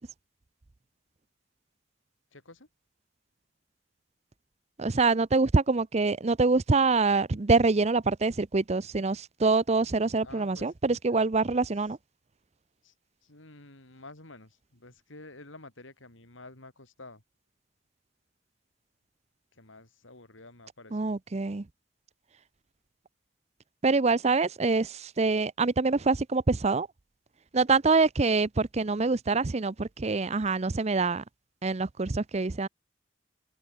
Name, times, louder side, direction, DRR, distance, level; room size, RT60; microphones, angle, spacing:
voice 1, 2.3-2.7 10.2-10.7 11.1-11.7 12.8-12.9 13.2-17.2 19.5-21.2, left 2 dB, 85° left, 5.4 m, -50 dB
voice 2, 4.8-12.0 20.9-21.7 23.8-26.9 27.5-31.2 31.6-32.7, right 3 dB, 35° right, 0.6 m, -25 dB
head